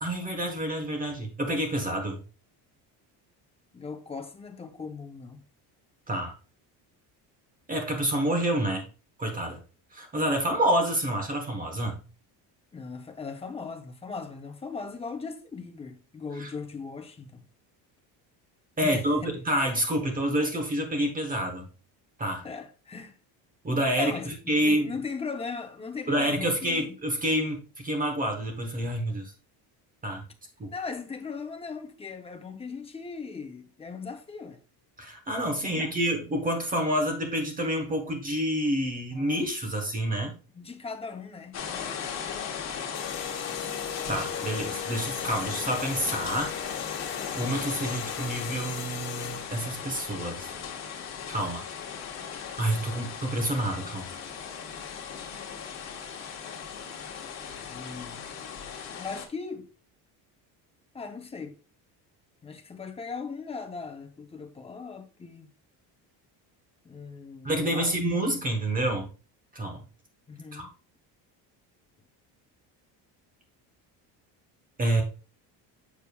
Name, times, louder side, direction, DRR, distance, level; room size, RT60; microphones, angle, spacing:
voice 1, 0.0-2.2 6.1-6.3 7.7-8.9 9.2-9.6 9.9-12.0 16.3-16.5 18.8-21.7 22.2-22.5 23.6-24.9 26.1-29.3 30.0-30.2 30.6-30.7 35.0-40.4 44.1-46.5 47.4-50.5 51.3-51.6 52.6-54.2 67.4-69.1 69.5-69.8 70.5-70.7 74.8-75.0, right 1 dB, 20° right, 1.0 m, -28 dB
voice 2, 3.7-5.4 12.7-17.5 18.8-19.4 22.4-23.2 24.0-27.0 30.7-34.6 35.6-36.0 40.5-42.4 47.4-47.7 57.6-58.3 58.9-59.7 60.9-61.6 62.4-65.5 66.8-68.1 70.3-70.8, left 4 dB, 15° left, 0.6 m, -39 dB
sound 1, 41.5-59.3, left 7 dB, 40° left, 1.3 m, -37 dB
sound 2, 42.9-49.7, left 8 dB, 60° left, 1.0 m, -39 dB
7.1 x 6.2 x 2.2 m
cardioid pair, 155°, 42 cm